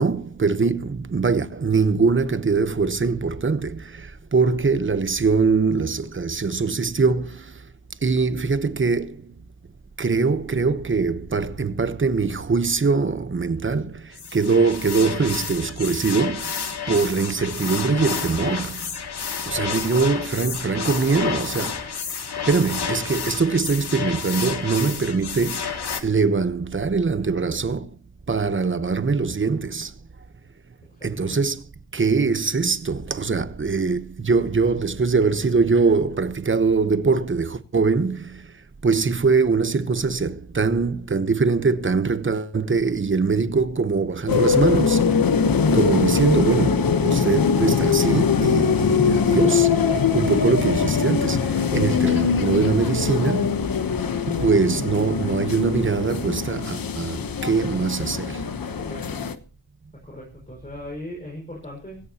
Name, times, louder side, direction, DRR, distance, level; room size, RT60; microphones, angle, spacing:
voice 1, 0.0-7.5 8.0-9.4 10.0-18.8 19.5-21.9 22.5-27.9 28.3-29.9 31.0-31.6 31.9-38.5 38.8-45.2 45.7-49.8 50.1-53.6 54.3-58.4, right 4 dB, 30° right, 1.0 m, -22 dB
sound 1, 14.1-26.0, left 6 dB, 90° left, 2.0 m, -30 dB
voice 2, 19.5-20.1 27.3-27.6 31.0-31.4 58.6-59.2 60.0-62.0, left 1 dB, 20° left, 5.6 m, -39 dB
sound 2, 44.3-59.3, left 6 dB, 60° left, 1.1 m, -22 dB
20.0 x 17.0 x 2.9 m
wide cardioid pair, 130°, 38 cm